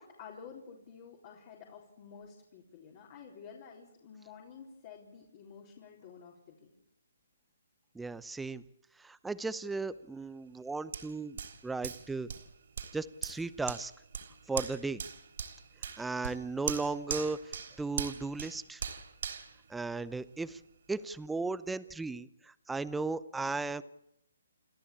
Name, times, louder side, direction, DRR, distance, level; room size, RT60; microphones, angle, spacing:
voice 1, 0.0-6.7 16.3-16.8, left 6 dB, 40° left, -1 dB, 4.1 m, -51 dB
voice 2, 7.9-8.6 9.0-11.4 11.6-12.3 12.9-13.9 14.5-15.0 16.0-18.8 19.7-20.6 20.9-23.8, right 3 dB, 5° right, 15 dB, 0.7 m, -36 dB
Hands, 10.9-20.4 20.9-21.0, right 7 dB, 65° right, 3.5 m, -41 dB
29.0 x 13.0 x 8.7 m, 0.81 s
hypercardioid pair, 145°, 0 cm